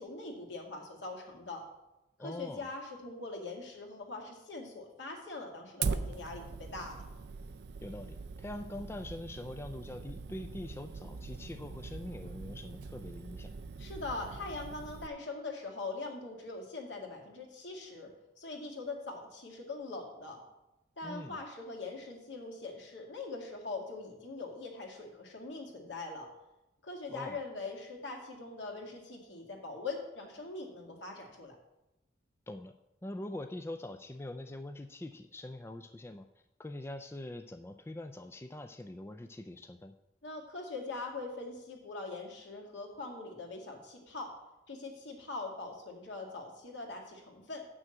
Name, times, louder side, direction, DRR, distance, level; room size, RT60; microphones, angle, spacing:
voice 1, 0.0-1.6 2.2-7.0 13.8-18.1 18.4-20.4 21.0-26.3 26.8-31.6 40.2-44.3 44.7-47.7, left 3 dB, 70° left, 0 dB, 2.2 m, -42 dB
voice 2, 2.2-2.7 7.8-13.6 21.0-21.4 27.1-27.4 32.5-32.7 33.0-36.3 36.6-39.9, left 1 dB, 15° left, 7 dB, 0.3 m, -43 dB
Fire, 5.8-15.1, right 5 dB, 60° right, 0.4 m, -41 dB
7.6 x 6.2 x 7.7 m, 0.94 s
head